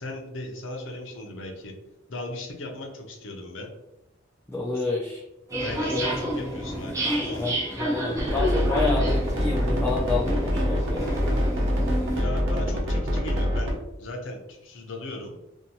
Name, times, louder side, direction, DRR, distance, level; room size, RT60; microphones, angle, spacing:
voice 1, 0.0-1.7 2.1-3.7 5.6-7.5 12.1-15.3, left 2 dB, 80° left, 2 dB, 0.6 m, -37 dB
voice 2, 4.5-5.2 5.9-6.1 7.4-11.1, left 3 dB, 10° left, -4 dB, 0.3 m, -29 dB
sound 1, 5.5-12.2, equal, 15° right, 0.7 m, -29 dB
sound 2, 8.2-13.7, equal, 85° right, 0.7 m, -25 dB
2.7 x 2.2 x 2.7 m, 0.95 s
head